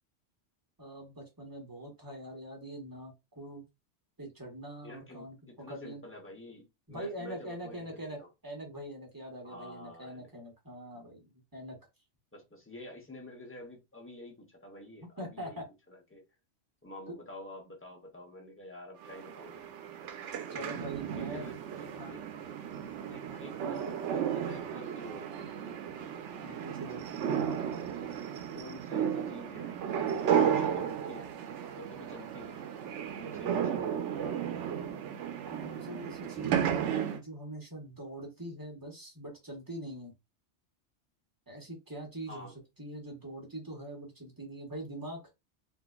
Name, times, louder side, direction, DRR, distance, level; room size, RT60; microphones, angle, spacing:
voice 1, 0.8-3.6 4.2-5.4 5.7-6.0 6.9-8.2 8.4-11.8 15.2-15.6 17.1-17.2 20.5-21.4 21.9-22.1 23.3-23.4 26.4-27.0 35.5-40.1 41.5-42.5 42.8-45.2, right 1 dB, 20° right, 1.3 m, -43 dB
voice 2, 4.8-8.3 9.4-10.3 10.9-11.0 12.3-16.2 16.8-19.7 21.1-22.5 23.1-25.8 27.2-27.8 28.1-28.2 28.5-29.8 30.1-31.3 31.8-32.7 33.2-33.9 42.3-42.5, left 1 dB, 10° left, 1.0 m, -49 dB
sound 1, 19.0-37.2, right 8 dB, 90° right, 0.9 m, -34 dB
3.8 x 2.7 x 2.3 m
omnidirectional pair, 1.2 m